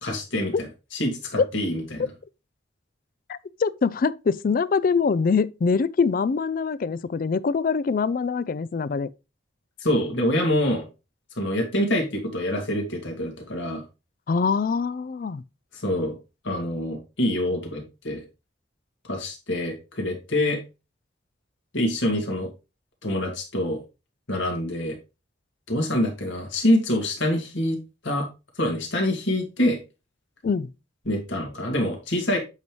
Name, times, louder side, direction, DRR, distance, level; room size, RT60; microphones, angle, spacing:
voice 1, 0.0-0.5 0.9-2.1 9.8-10.9 11.4-13.8 15.7-16.2 16.4-18.2 19.0-20.6 21.7-22.5 23.0-23.8 24.3-25.0 25.7-27.8 28.0-28.3 28.6-29.8 31.1-32.4, left 1 dB, 80° left, 2.1 m, -25 dB
voice 2, 3.3-9.1 14.3-15.4 30.4-30.7, left 5 dB, 45° left, 0.3 m, -24 dB
8.0 x 5.3 x 3.1 m
head